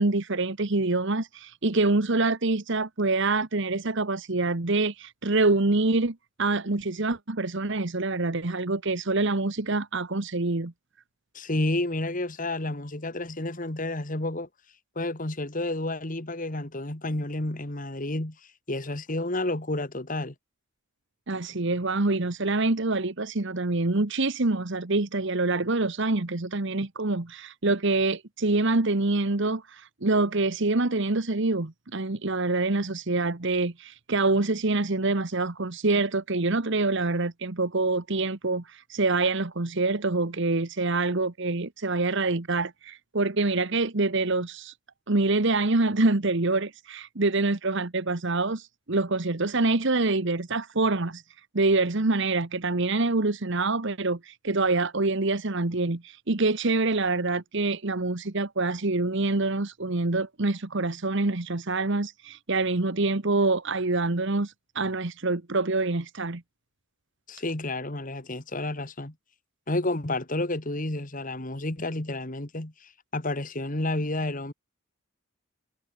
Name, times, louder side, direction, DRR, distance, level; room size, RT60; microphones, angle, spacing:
voice 1, 0.0-10.7 21.3-44.7 45.1-51.2 51.5-66.4, right 3 dB, 55° right, 1.3 m, -26 dB
voice 2, 11.3-14.5 15.0-18.4 18.7-20.3 67.3-69.1 69.7-74.5, left 2 dB, 40° left, 1.9 m, -30 dB
head